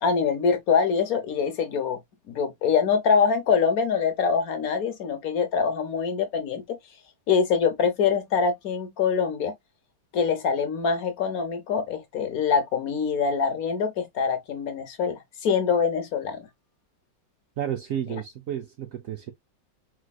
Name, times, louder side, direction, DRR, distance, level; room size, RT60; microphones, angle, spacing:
voice 1, 0.0-2.0 2.3-6.8 7.3-9.5 10.1-16.5, left 6 dB, 60° left, 1.1 m, -24 dB
voice 2, 17.6-19.3, right 10 dB, 65° right, 0.8 m, -31 dB
4.9 x 3.9 x 2.3 m
omnidirectional pair, 2.0 m